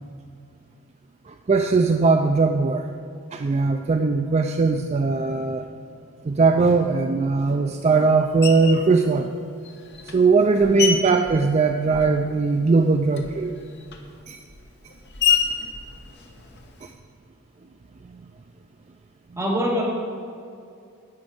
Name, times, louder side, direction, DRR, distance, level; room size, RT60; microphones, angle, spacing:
voice 1, 1.5-2.9 3.3-5.6 6.3-9.3 10.1-13.5 14.3-14.4, right 4 dB, 30° right, 6 dB, 0.3 m, -19 dB
Screech, 8.4-8.9 9.6-12.3 12.6-16.9, left 7 dB, 50° left, 1.1 m, -29 dB
voice 2, 19.4-19.8, equal, 10° right, -6 dB, 2.7 m, -24 dB
11.5 x 5.3 x 8.6 m, 2.5 s
head